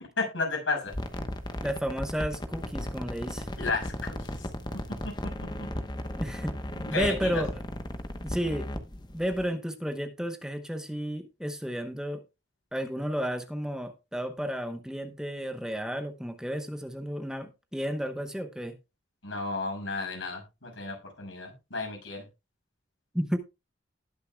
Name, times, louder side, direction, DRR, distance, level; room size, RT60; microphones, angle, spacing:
voice 1, 0.2-0.9 3.6-4.5 5.0-5.1 6.7-7.4 19.2-22.3, left 3 dB, 85° left, 1 dB, 6.2 m, -33 dB
sound 1, 0.9-9.5, left 1 dB, 20° left, 0.9 m, -36 dB
voice 2, 1.6-3.5 6.2-6.6 6.9-7.6 8.2-8.7 9.1-12.2 12.7-18.8 23.1-23.4, equal, 5° right, 8 dB, 0.8 m, -32 dB
19.5 x 6.7 x 2.3 m, 0.26 s
head